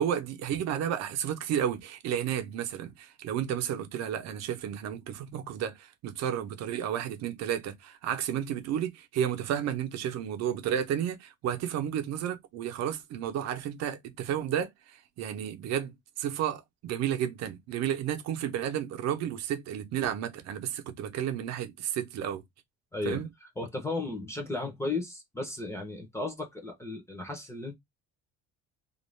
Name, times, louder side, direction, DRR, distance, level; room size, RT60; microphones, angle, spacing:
voice 1, 0.0-22.4 23.0-23.3, right 9 dB, 60° right, 0.7 m, -32 dB
voice 2, 22.9-23.2 23.6-27.7, left 2 dB, 10° left, 0.6 m, -35 dB
2.5 x 2.3 x 3.1 m
cardioid pair, 175°, 30 cm